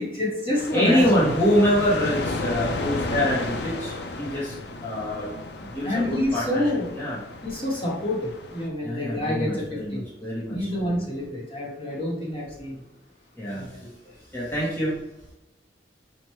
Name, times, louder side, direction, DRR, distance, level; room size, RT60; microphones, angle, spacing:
voice 1, 0.0-1.1 5.8-6.9 7.4-10.1 10.5-12.8 13.5-13.9, left 1 dB, 30° left, -4 dB, 1.3 m, -28 dB
sound 1, 0.6-8.7, left 2 dB, 70° left, 0.5 m, -33 dB
voice 2, 0.7-4.5 4.8-7.2 8.8-11.1 13.4-13.7 14.3-15.0, equal, 10° left, -9 dB, 1.0 m, -25 dB
4.7 x 2.5 x 4.3 m, 0.95 s
head